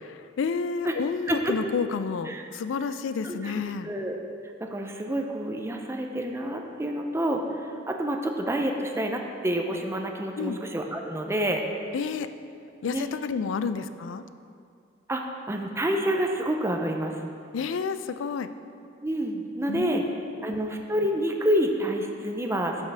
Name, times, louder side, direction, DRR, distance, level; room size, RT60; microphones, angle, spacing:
voice 1, 0.4-3.9 10.4-10.6 11.9-12.3 12.8-14.2 17.5-18.5 19.7-20.5, left 5 dB, 85° left, 11 dB, 0.4 m, -30 dB
voice 2, 3.2-4.2 4.6-11.6 12.8-13.0 15.1-17.2 19.0-20.0 20.4-22.8, right 1 dB, 15° right, 3 dB, 0.5 m, -28 dB
11.0 x 5.5 x 3.4 m, 2.4 s
head